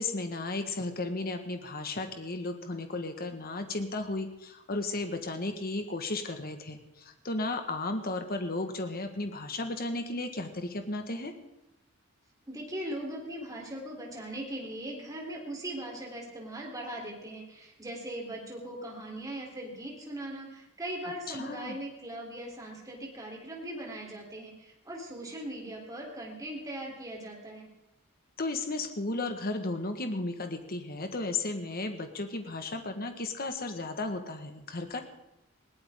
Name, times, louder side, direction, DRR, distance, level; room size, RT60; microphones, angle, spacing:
voice 1, 0.0-11.3 21.3-21.8 28.4-35.0, left 2 dB, 45° left, 6 dB, 1.6 m, -34 dB
voice 2, 12.5-27.7, right 1 dB, 15° right, -1 dB, 3.7 m, -39 dB
20.5 x 17.5 x 3.8 m, 0.89 s
head